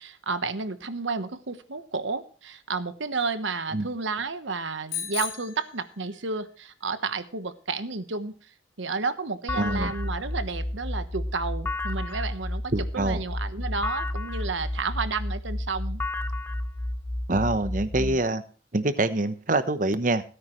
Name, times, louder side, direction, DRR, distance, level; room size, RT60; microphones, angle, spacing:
voice 1, 0.0-8.5 8.8-16.0 18.0-18.2, right 4 dB, 80° right, 11 dB, 1.2 m, -31 dB
Bicycle bell, 4.9-6.5, left 9 dB, 90° left, 3.8 m, -36 dB
sound 1, 9.5-18.2, left 1 dB, 10° left, 0.5 m, -31 dB
voice 2, 9.6-9.9 12.7-13.2 17.3-18.4 18.7-20.2, right 2 dB, 45° right, 12 dB, 1.0 m, -25 dB
17.0 x 9.6 x 3.2 m, 0.39 s
head